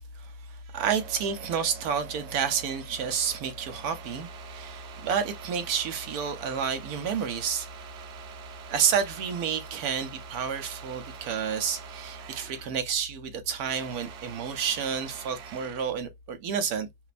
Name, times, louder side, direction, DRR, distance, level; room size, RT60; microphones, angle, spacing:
voice 1, 0.2-7.7 8.7-16.9, right 7 dB, 65° right, 1.1 m, -30 dB
sound 1, 0.8-12.8 13.1-16.0, right 9 dB, 85° right, 0.6 m, -46 dB
3.0 x 2.1 x 2.3 m
omnidirectional pair, 1.8 m